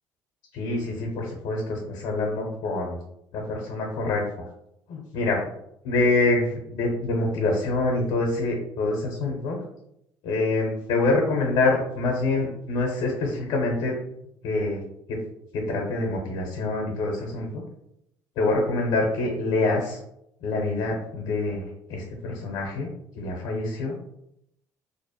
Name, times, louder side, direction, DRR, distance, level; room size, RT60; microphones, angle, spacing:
voice 1, 0.5-3.0 3.3-4.2 4.9-5.4 5.8-9.6 10.2-14.0 14.4-14.8 15.7-17.6 18.4-20.0 20.4-22.9 23.2-24.0, left 2 dB, 70° left, -1 dB, 0.6 m, -26 dB
2.5 x 2.1 x 2.7 m, 0.79 s
hypercardioid pair, 65°, 9 cm